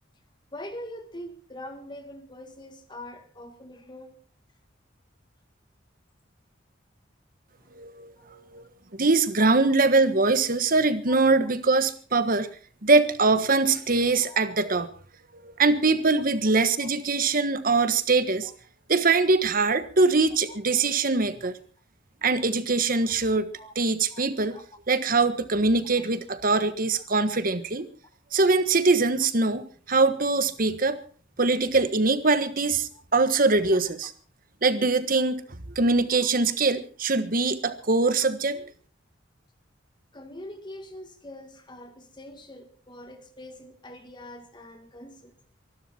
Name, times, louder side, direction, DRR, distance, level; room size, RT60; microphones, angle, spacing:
voice 1, 0.5-4.2 7.6-7.7 8.2-8.5 11.1-11.2 11.4-11.5 14.2-14.4 16.8-16.9 18.4-18.5 23.3-23.7 24.1-24.6 30.9-31.0 32.9-33.0 40.1-45.4, left 1 dB, 25° left, 1.8 m, -43 dB
voice 2, 7.7-12.5 12.8-14.9 15.3-18.5 18.9-21.5 22.2-23.5 23.7-24.6 24.9-27.9 28.3-31.0 31.4-34.1 34.6-35.4 35.7-38.6, right 3 dB, 45° right, 1.4 m, -23 dB
24.0 x 12.5 x 4.4 m
head